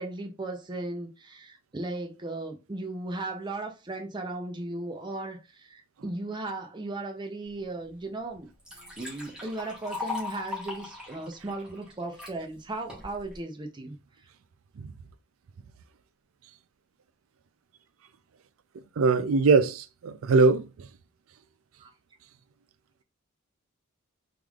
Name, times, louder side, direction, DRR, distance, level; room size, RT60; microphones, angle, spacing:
voice 1, 0.0-8.5 9.0-14.0 21.8-21.9, right 2 dB, 20° right, 0.6 m, -36 dB
Liquid, 7.8-7.9 8.3-12.3 12.9-13.4, left 3 dB, 5° right, 1.3 m, -39 dB
voice 2, 19.0-20.7, right 4 dB, 80° right, 0.4 m, -21 dB
3.6 x 3.1 x 2.4 m
head